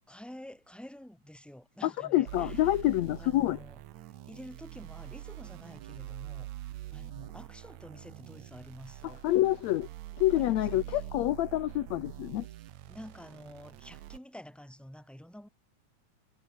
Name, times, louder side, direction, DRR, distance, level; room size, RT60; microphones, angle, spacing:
voice 1, 0.1-2.8 3.2-9.2 10.3-11.1 12.9-15.5, equal, ahead, 4.6 m, -49 dB
voice 2, 1.8-3.6 9.2-9.9 10.2-12.4, left 15 dB, 70° left, 1.9 m, -27 dB
sound 1, 2.3-14.2, right 14 dB, 70° right, 2.1 m, -44 dB
omnidirectional pair, 3.7 m